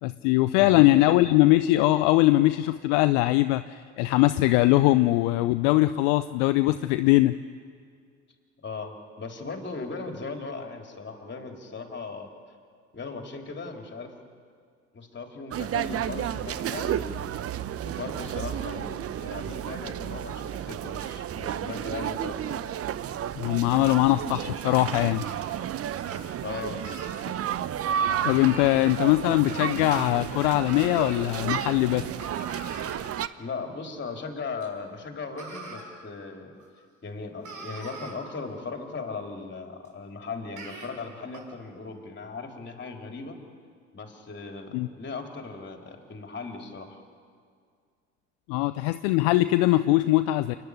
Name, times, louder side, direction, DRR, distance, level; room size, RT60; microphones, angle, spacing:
voice 1, 0.0-7.3 23.4-25.2 28.2-32.1 44.7-44.9 48.5-50.5, left 17 dB, 65° left, 12 dB, 0.6 m, -21 dB
voice 2, 8.6-12.3 12.9-14.1 14.9-17.4 17.8-22.7 26.4-26.9 27.2-27.4 33.4-36.5 37.0-43.4 43.9-47.0, left 4 dB, 30° left, 3 dB, 3.7 m, -38 dB
sound 1, 15.5-33.3, right 10 dB, 40° right, 0.8 m, -32 dB
sound 2, 25.2-25.4 26.0-26.2 26.8-27.1 27.9-28.9 29.4-30.2 30.7-31.2 32.2-33.0 34.6-34.7 35.4-35.8 36.6-36.7 37.1-37.2 37.4-38.1 39.8-39.9 40.5-40.9 41.3-41.4, right 2 dB, 55° right, 5.2 m, -41 dB
28.5 x 10.0 x 9.8 m, 2.1 s
hypercardioid pair, 55°, 36 cm